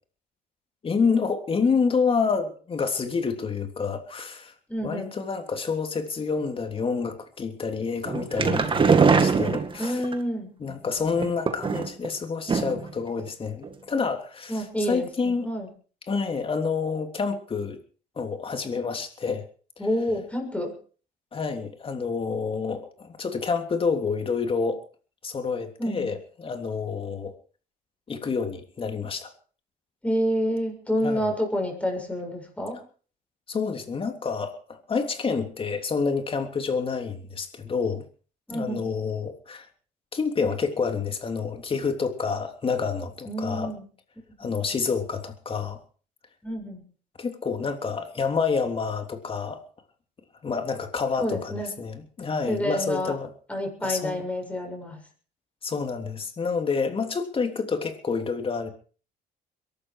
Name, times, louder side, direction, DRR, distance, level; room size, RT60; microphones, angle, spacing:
voice 1, 0.8-4.5 4.8-10.0 10.6-15.5 16.1-17.8 18.2-19.4 21.3-24.8 25.2-27.3 28.1-29.3 31.0-31.3 33.5-38.0 38.5-39.7 40.1-43.7 44.4-45.8 47.2-49.6 50.4-53.3 53.8-54.2 55.6-58.7, left 5 dB, 30° left, 6 dB, 3.2 m, -28 dB
voice 2, 4.7-5.1 8.5-8.7 9.8-10.5 14.5-15.7 19.8-20.7 25.8-26.1 30.0-32.8 38.5-38.8 43.3-43.8 44.4-44.6 46.4-46.8 51.2-51.7 52.5-53.2 53.5-55.0, equal, 10° left, 3 dB, 7.5 m, -28 dB
sound 1, 8.0-10.1 11.1-12.1 12.5-12.9 13.2-13.3 13.6-13.7, right 5 dB, 30° right, 2.1 m, -22 dB
22.5 x 12.5 x 4.8 m, 0.41 s
cardioid pair, 110°, 17 cm